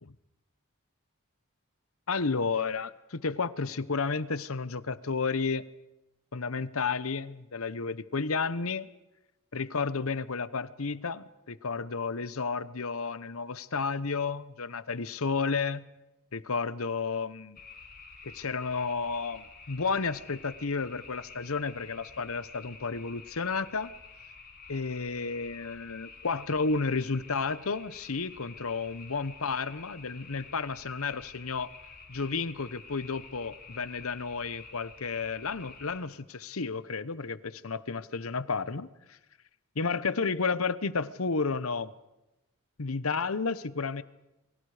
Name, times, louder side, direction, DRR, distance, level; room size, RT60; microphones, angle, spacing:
voice 1, 2.1-5.6 6.3-8.9 9.5-15.9 16.3-17.6 18.2-23.9 24.7-31.7 32.1-39.2 39.8-41.9 42.8-44.0, left 4 dB, 75° left, 15 dB, 1.0 m, -32 dB
sound 1, 17.5-36.0, left 4 dB, 40° left, 5.9 m, -50 dB
28.5 x 23.5 x 5.0 m, 0.97 s
head